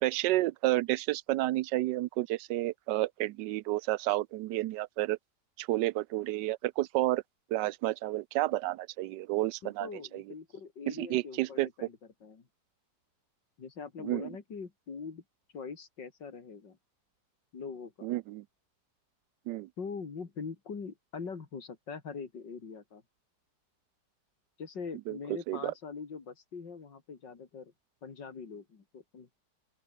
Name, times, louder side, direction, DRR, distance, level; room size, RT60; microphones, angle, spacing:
voice 1, 0.0-5.2 5.6-7.2 7.5-10.2 10.9-11.7 14.0-14.3 18.0-18.4 19.5-19.7 25.1-25.2 25.5-25.7, right 16 dB, 80° right, 1.2 m, -31 dB
voice 2, 9.6-12.5 13.6-15.2 15.5-16.8 17.5-18.1 19.8-23.0 24.6-27.7 28.0-29.3, left 5 dB, 85° left, 3.3 m, -43 dB
open air
omnidirectional pair, 1.9 m